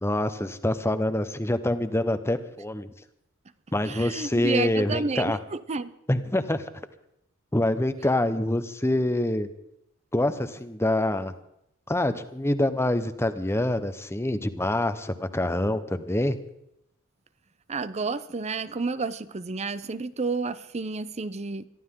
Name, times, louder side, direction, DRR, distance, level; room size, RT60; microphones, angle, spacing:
voice 1, 0.0-2.9 3.7-5.4 6.1-6.6 7.5-9.5 10.1-11.3 11.9-16.4, left 1 dB, 10° left, 10 dB, 0.9 m, -26 dB
voice 2, 3.9-5.9 17.7-21.7, right 4 dB, 30° right, 14 dB, 0.6 m, -30 dB
22.5 x 14.0 x 3.8 m, 0.77 s
head